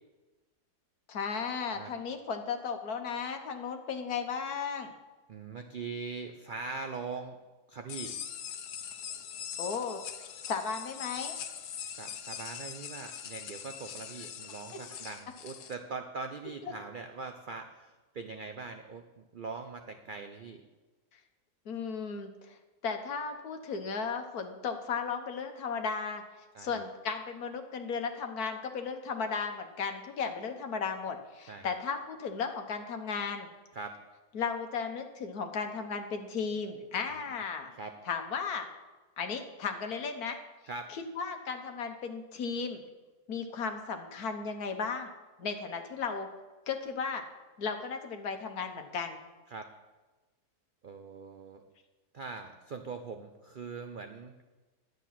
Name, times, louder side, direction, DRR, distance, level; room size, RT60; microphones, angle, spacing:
voice 1, 1.1-4.9 9.6-10.0 10.5-11.3 16.6-16.7 21.1-21.2 21.6-22.6 22.8-26.2 26.6-33.5 34.3-37.7 38.1-38.7 39.2-40.4 40.9-42.8 43.3-45.1 45.4-46.3 46.7-47.2 47.6-49.2, left 5 dB, 70° left, 5 dB, 1.6 m, -35 dB
voice 2, 5.3-7.4 7.7-8.2 11.9-20.7 26.5-26.8 31.5-31.7 33.7-33.9 37.1-37.2 37.7-37.9 40.7-40.9 49.5-49.7 50.8-51.6 52.1-54.4, right 4 dB, 55° right, 6 dB, 0.6 m, -42 dB
sound 1, 7.9-15.7, left 8 dB, 85° left, 1.3 m, -42 dB
11.0 x 9.2 x 5.9 m, 1.2 s
omnidirectional pair, 1.7 m